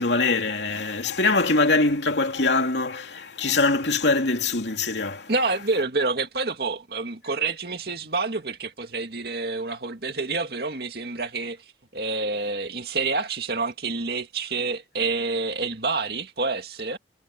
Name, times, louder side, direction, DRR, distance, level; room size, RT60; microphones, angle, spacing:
voice 1, 0.0-5.3, left 3 dB, 80° left, 2.7 m, -23 dB
voice 2, 5.3-11.6 11.9-17.0, right 3 dB, 60° right, 2.4 m, -28 dB
head